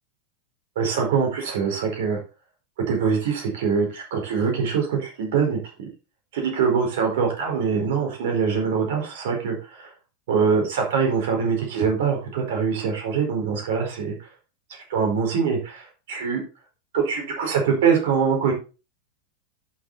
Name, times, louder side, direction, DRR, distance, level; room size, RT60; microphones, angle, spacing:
voice 1, 0.7-2.2 2.9-5.9 6.3-9.9 10.3-14.3 14.9-16.4 16.9-18.5, right 6 dB, 55° right, 2 dB, 4.5 m, -23 dB
11.5 x 6.9 x 4.1 m, 0.32 s
figure-of-eight pair, 90°, 0 cm